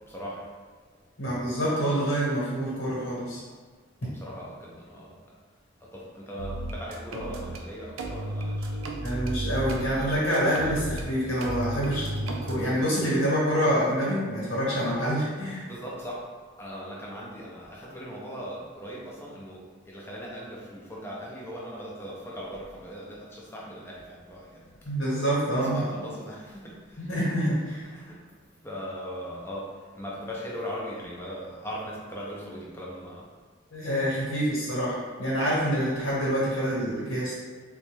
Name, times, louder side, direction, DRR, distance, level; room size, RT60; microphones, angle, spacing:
voice 1, 0.1-0.5 4.1-5.3 5.8-8.9 15.5-16.2 16.6-24.7 25.5-27.0 27.7-28.2 28.6-33.3, equal, 10° left, -5 dB, 0.5 m, -39 dB
voice 2, 1.2-3.4 9.0-15.7 24.8-25.8 27.0-27.9 33.7-37.3, equal, 65° left, -7 dB, 1.1 m, -27 dB
sound 1, 6.4-7.6 8.0-11.0 11.4-12.6, right 1 dB, 85° right, 0.4 m, -33 dB
3.8 x 2.2 x 3.1 m, 1.5 s
head